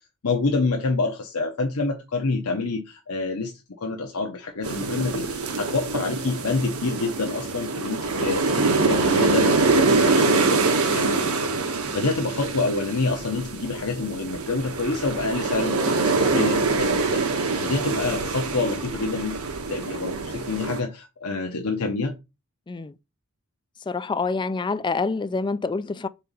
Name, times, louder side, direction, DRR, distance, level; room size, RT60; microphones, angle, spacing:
voice 1, 0.2-11.3 11.6-19.4 19.7-22.2, left 3 dB, 85° left, 0.9 m, -27 dB
sound 1, 4.6-20.8, right 3 dB, 80° right, 1.2 m, -24 dB
voice 2, 23.9-26.1, left 4 dB, 20° left, 0.3 m, -26 dB
4.4 x 4.1 x 5.3 m
head